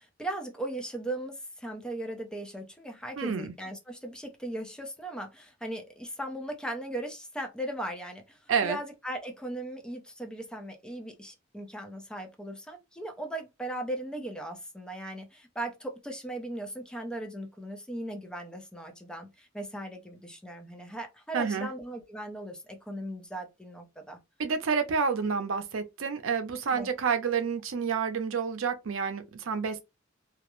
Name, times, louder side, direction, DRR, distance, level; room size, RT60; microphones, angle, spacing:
voice 1, 0.0-24.2 26.7-26.9, right 1 dB, 5° left, 0.4 m, -38 dB
voice 2, 3.2-3.5 8.5-8.8 21.3-21.7 24.4-29.8, right 6 dB, 90° right, 0.5 m, -29 dB
2.3 x 2.0 x 2.9 m
head